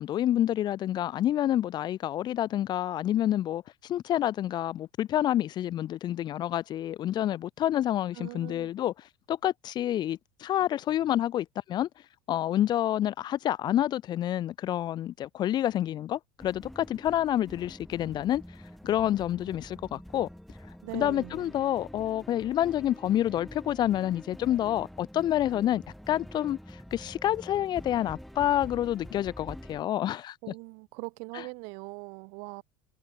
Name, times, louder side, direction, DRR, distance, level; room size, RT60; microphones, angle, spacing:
voice 1, 0.0-8.9 9.3-11.9 12.3-18.4 18.8-20.3 20.9-30.4, left 12 dB, 45° left, 0.9 m, -28 dB
voice 2, 8.1-8.7 20.8-21.5 30.4-32.6, right 40 dB or more, 70° right, 3.2 m, -41 dB
sound 1, 16.4-29.8, equal, ahead, 1.2 m, -46 dB
supercardioid pair, 95°, 11 cm